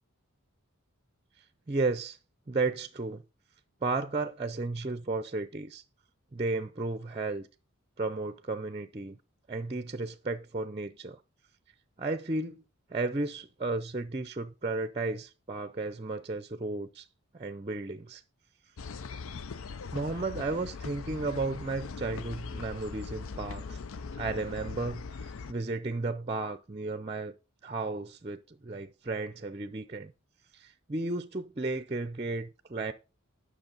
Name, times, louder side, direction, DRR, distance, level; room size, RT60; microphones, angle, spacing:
voice 1, 1.7-2.2 2.5-3.2 3.8-5.8 6.3-7.5 8.0-9.2 9.5-11.2 12.0-12.6 12.9-17.1 17.3-18.2 19.9-23.6 24.1-27.3 27.6-30.1 30.5-32.9, right 3 dB, 25° right, 0.5 m, -33 dB
sound 1, 18.8-25.5, left 4 dB, 65° left, 0.5 m, -40 dB
10.5 x 6.0 x 5.3 m
head